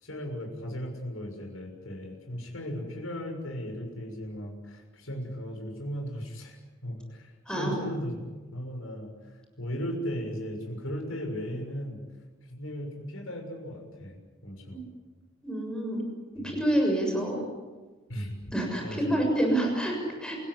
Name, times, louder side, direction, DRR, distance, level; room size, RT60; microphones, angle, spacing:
voice 1, 0.0-6.6 6.8-8.2 8.5-9.1 9.6-12.0 12.5-14.8 16.4-16.5 18.1-18.3 18.8-19.2, equal, 80° left, 3 dB, 6.7 m, -36 dB
voice 2, 15.4-16.0 16.4-17.4 18.5-20.4, right 1 dB, 5° left, 1 dB, 6.8 m, -27 dB
29.0 x 16.5 x 10.0 m, 1.3 s
head